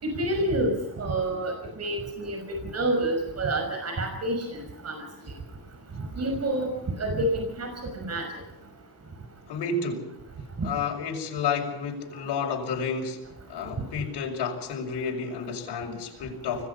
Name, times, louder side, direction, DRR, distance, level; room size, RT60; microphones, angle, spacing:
voice 1, 0.0-5.0 6.2-6.7 7.0-8.3, right 1 dB, 40° right, 4 dB, 5.8 m, -28 dB
voice 2, 9.5-10.1 10.6-13.2 13.5-16.7, left 5 dB, 85° left, 1 dB, 5.9 m, -31 dB
26.0 x 20.0 x 5.6 m, 0.87 s
cardioid pair, 110°, 39 cm